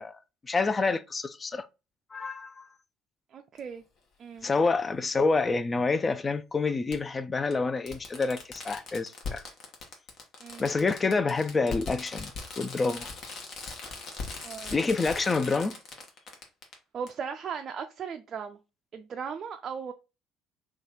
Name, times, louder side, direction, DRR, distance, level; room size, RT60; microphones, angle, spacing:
voice 1, 0.0-1.7 2.1-2.7 4.4-9.4 10.6-12.3 12.6-13.1 14.7-15.7, left 4 dB, 25° left, 0.4 m, -27 dB
voice 2, 3.3-3.8 4.2-4.5 10.4-10.7 14.4-14.8 16.9-18.6 18.9-19.9, right 6 dB, 45° right, 0.3 m, -37 dB
Fireworks, 3.6-3.7 5.2-5.3 6.9-7.0 7.5-7.6 7.9-16.7 17.1-17.2, left 4 dB, 50° left, 0.9 m, -40 dB
3.1 x 2.3 x 3.7 m
hypercardioid pair, 60°, 0 cm